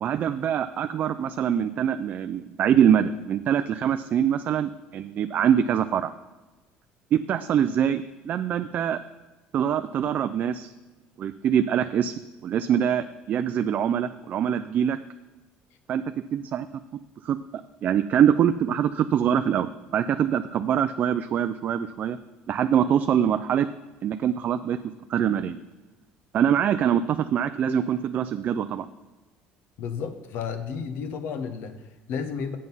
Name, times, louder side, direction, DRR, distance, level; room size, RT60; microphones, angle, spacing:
voice 1, 0.0-6.1 7.1-9.0 9.5-10.7 11.2-12.1 12.4-15.0 15.9-16.0 16.3-16.7 17.2-17.4 17.8-22.2 22.5-23.7 24.0-24.8 25.1-25.6 26.3-28.9, right 9 dB, 45° right, 10 dB, 0.3 m, -24 dB
voice 2, 29.8-32.6, left 6 dB, 65° left, 9 dB, 1.0 m, -32 dB
7.7 x 7.4 x 5.5 m, 1.2 s
cardioid pair, 120°, 4 cm